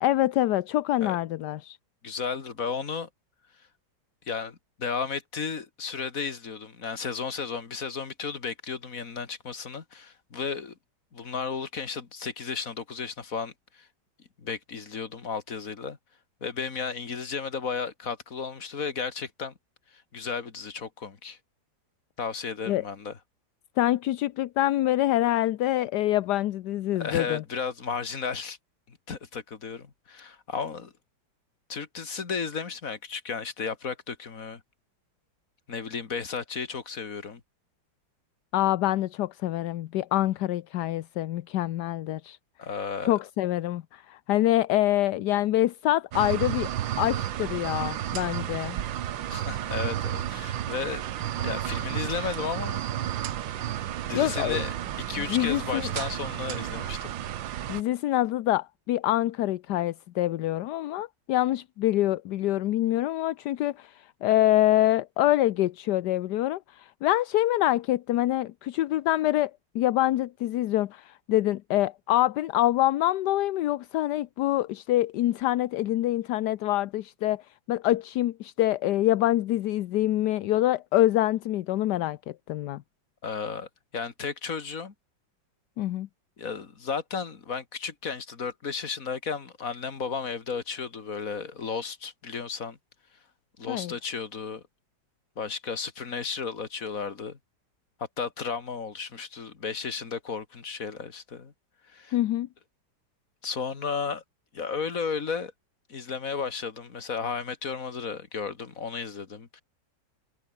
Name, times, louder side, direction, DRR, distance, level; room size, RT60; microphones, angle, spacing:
voice 1, 0.0-1.8 22.7-22.8 23.8-27.4 38.5-42.4 43.1-46.7 47.0-48.8 54.1-54.6 55.3-55.9 57.7-77.4 77.7-82.8 85.8-86.1 93.7-93.9 102.1-102.5, left 14 dB, 70° left, 1.2 m, -25 dB
voice 2, 2.0-3.1 4.3-10.7 11.1-13.9 14.4-16.0 16.4-19.5 19.9-21.4 22.2-23.2 27.0-28.6 28.9-30.9 31.7-34.6 35.7-37.4 42.6-43.2 49.3-51.0 51.3-52.8 54.0-54.7 55.1-57.1 83.2-83.7 83.9-84.9 86.4-92.8 93.6-94.6 95.4-97.4 98.2-101.5 101.9-102.2 103.4-104.2 104.5-105.5 105.9-109.6, left 5 dB, 45° left, 2.4 m, -34 dB
sound 1, 46.1-57.8, right 11 dB, 75° right, 1.7 m, -32 dB
omnidirectional pair, 2.1 m